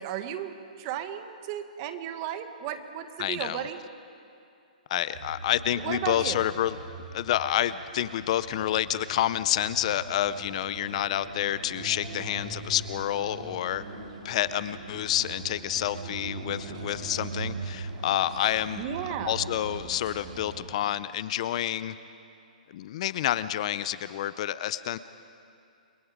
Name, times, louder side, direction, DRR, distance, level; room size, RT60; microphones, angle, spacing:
voice 1, 0.0-3.8 5.8-6.4 18.7-19.4, right 10 dB, 35° right, 8 dB, 1.6 m, -34 dB
voice 2, 3.2-3.6 4.9-6.7 7.1-13.8 14.2-18.8 19.2-21.9 22.7-25.0, left 12 dB, 50° left, 15 dB, 0.6 m, -28 dB
sound 1, 5.1-20.6, right 4 dB, 55° right, 3.1 m, -41 dB
29.5 x 22.5 x 5.1 m, 2.5 s
hypercardioid pair, 145°, 5 cm